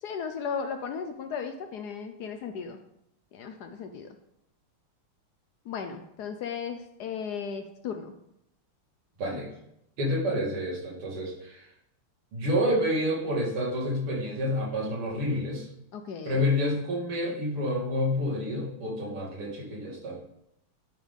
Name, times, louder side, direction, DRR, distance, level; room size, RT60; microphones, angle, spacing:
voice 1, 0.0-2.8 3.3-4.2 5.7-8.1 15.9-16.4, left 6 dB, 75° left, 6 dB, 0.9 m, -36 dB
voice 2, 9.2-9.5 10.0-11.7 12.3-15.7 16.2-20.2, left 1 dB, 80° right, -4 dB, 3.0 m, -29 dB
12.0 x 5.3 x 3.7 m, 0.80 s
omnidirectional pair, 2.4 m